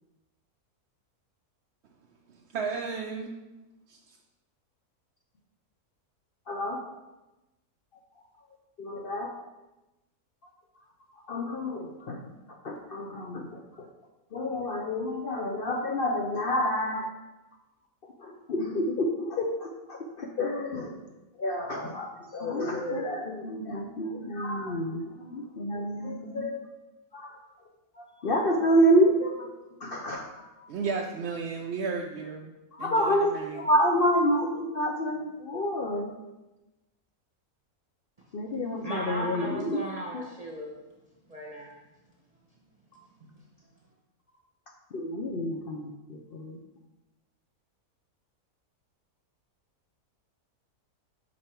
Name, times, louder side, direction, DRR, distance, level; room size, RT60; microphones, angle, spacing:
voice 1, 2.5-3.3 3.9-4.0 30.7-32.4 32.8-33.5, right 5 dB, 60° right, 0 dB, 0.7 m, -33 dB
voice 2, 6.5-6.8 8.8-9.3 11.1-13.9 14.3-17.1 18.0-21.0 21.4-26.7 27.1-27.4 27.9-29.5 29.8-30.7 32.8-36.1 38.3-39.8 40.1-40.3 44.9-46.6, equal, 55° left, 1 dB, 0.6 m, -28 dB
voice 3, 38.8-40.7 41.3-41.7 42.9-43.4, right 1 dB, 30° right, -3 dB, 0.9 m, -37 dB
5.6 x 5.3 x 4.4 m, 1.0 s
omnidirectional pair, 1.6 m